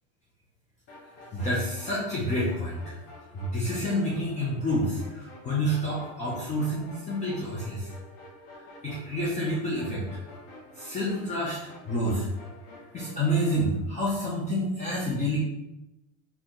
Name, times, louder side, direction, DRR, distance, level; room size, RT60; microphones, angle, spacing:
sound 1, 0.9-13.7, left 1 dB, 85° left, 1.6 m, -48 dB
voice 1, 1.3-3.0 3.3-7.9 8.8-10.1 10.8-11.6 11.8-12.3 12.9-15.4, equal, 20° left, -6 dB, 0.8 m, -28 dB
4.5 x 2.9 x 3.8 m, 0.95 s
supercardioid pair, 145°, 39 cm